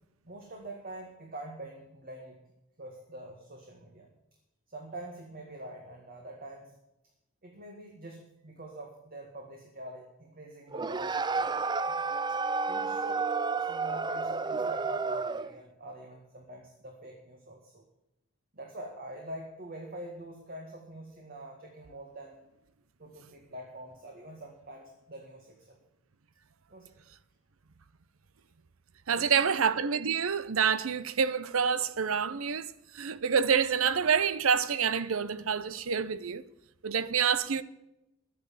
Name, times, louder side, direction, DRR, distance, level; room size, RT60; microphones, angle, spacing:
voice 1, 0.2-2.4 2.8-4.1 4.7-6.8 7.4-12.0 12.7-13.2 13.6-17.8 18.5-22.4 23.0-25.8 26.7-27.0 29.2-29.4, right 1 dB, 45° right, 1.8 m, -45 dB
sound 1, 10.7-15.6, right 4 dB, 20° right, 0.4 m, -31 dB
voice 2, 29.1-36.4 36.8-37.6, right 6 dB, 75° right, 0.7 m, -27 dB
11.5 x 9.5 x 7.1 m
head